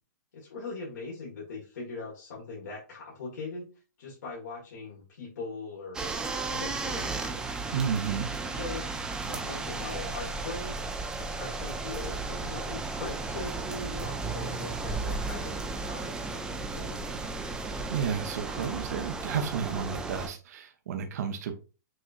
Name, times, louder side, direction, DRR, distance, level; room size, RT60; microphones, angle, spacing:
voice 1, 0.3-3.6 4.0-6.0 6.5-7.3 8.5-8.9 9.2-10.8 11.2-17.1, left 3 dB, 70° left, -5 dB, 1.8 m, -40 dB
sound 1, 5.9-20.3, right 3 dB, 5° right, 0.5 m, -34 dB
voice 2, 7.7-8.3 17.9-21.6, right 7 dB, 55° right, 5 dB, 0.7 m, -32 dB
6.2 x 2.9 x 2.5 m, 0.33 s
hypercardioid pair, 145°, 10 cm